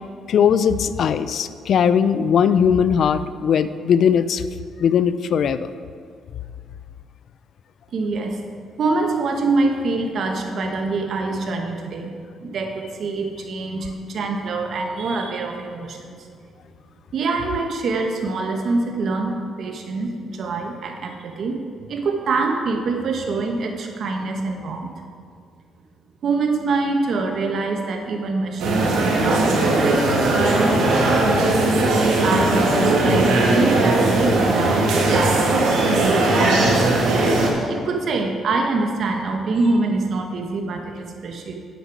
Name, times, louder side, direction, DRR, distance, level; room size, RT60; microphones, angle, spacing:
voice 1, 0.3-4.4 4.8-5.7, left 7 dB, 65° left, 13 dB, 0.4 m, -19 dB
voice 2, 7.9-8.4 8.8-12.1 12.4-16.3 17.1-21.6 21.9-24.9 26.2-30.7 31.9-36.6 37.7-41.5, right 3 dB, 60° right, 3 dB, 1.2 m, -25 dB
sound 1, 28.6-37.5, right 2 dB, 85° right, 1.7 m, -18 dB
9.1 x 8.1 x 4.8 m, 2.2 s
cardioid pair, 90°, 0 cm